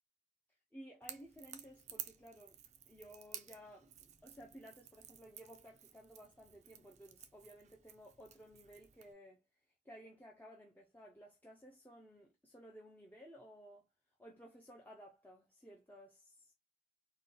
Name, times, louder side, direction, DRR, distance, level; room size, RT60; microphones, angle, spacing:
voice 1, 0.7-2.6 2.9-9.4 9.8-13.9 14.2-16.5, equal, 10° left, 0.6 m, -56 dB
Crackle / Crack, 1.0-9.1, right 10 dB, 35° right, 0.4 m, -54 dB
4.1 x 2.3 x 3.7 m
head